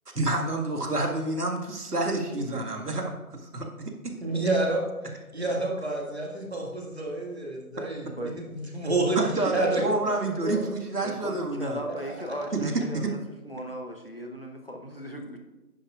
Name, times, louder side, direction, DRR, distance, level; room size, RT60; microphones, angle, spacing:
voice 1, 0.1-4.2 9.2-11.8 12.5-12.7 13.0-13.1, right 2 dB, 85° right, 2 dB, 1.9 m, -29 dB
voice 2, 4.2-4.9 5.3-9.2 9.5-9.9 10.4-10.6 11.9-12.0, right 2 dB, 45° right, -1 dB, 2.1 m, -28 dB
voice 3, 11.0-13.2 13.4-15.4, equal, 40° left, 2 dB, 0.9 m, -37 dB
10.5 x 9.8 x 2.4 m, 1.1 s
figure-of-eight pair, 175°, 45 cm